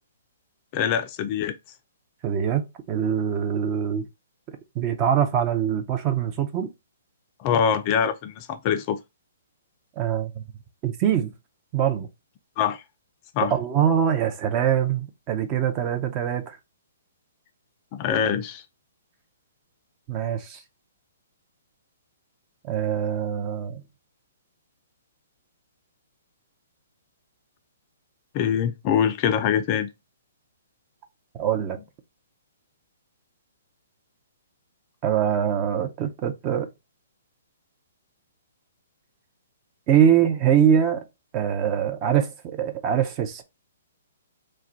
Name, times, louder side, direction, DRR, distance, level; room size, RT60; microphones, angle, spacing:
voice 1, 0.7-1.6 7.4-9.0 12.6-12.8 13.3-13.5 17.9-18.6 28.3-29.9, left 8 dB, 35° left, 0.3 m, -24 dB
voice 2, 2.2-4.1 4.8-6.7 10.0-10.4 10.8-11.3 11.7-12.1 13.5-16.6 20.1-20.6 22.6-23.8 31.3-31.8 35.0-36.7 39.9-41.0 41.3-43.4, right 9 dB, 30° right, 0.5 m, -23 dB
2.3 x 2.1 x 3.9 m
figure-of-eight pair, 125°, 0 cm